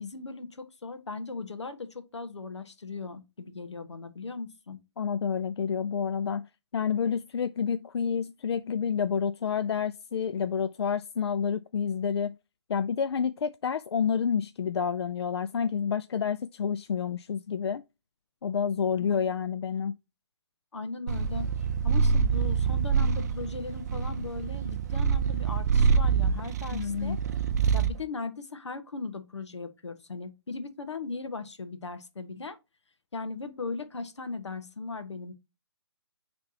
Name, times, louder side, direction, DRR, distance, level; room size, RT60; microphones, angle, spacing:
voice 1, 0.0-4.8 19.0-19.2 20.7-21.5 21.8-27.2 27.7-32.6 33.1-35.3, left 4 dB, 90° left, 1.3 m, -38 dB
voice 2, 5.0-6.5 6.7-12.3 12.7-17.8 18.4-19.9 26.7-27.2, left 7 dB, 70° left, 0.4 m, -29 dB
Purr, 21.1-28.0, right 6 dB, 40° right, 0.6 m, -26 dB
9.4 x 3.4 x 2.9 m
hypercardioid pair, 160°, 14 cm